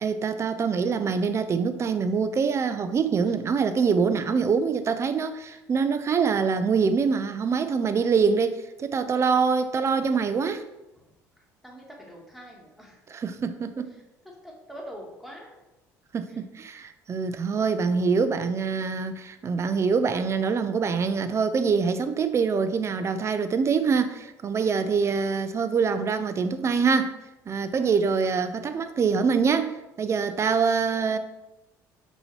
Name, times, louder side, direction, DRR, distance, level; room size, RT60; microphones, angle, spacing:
voice 1, 0.0-10.6 13.1-13.9 16.1-27.1 27.5-31.2, right 5 dB, 35° right, 0.4 m, -24 dB
voice 2, 11.6-13.0 14.4-15.5 16.3-16.4 27.8-27.9, equal, ahead, 1.4 m, -44 dB
5.3 x 2.9 x 3.1 m
supercardioid pair, 75°, 8 cm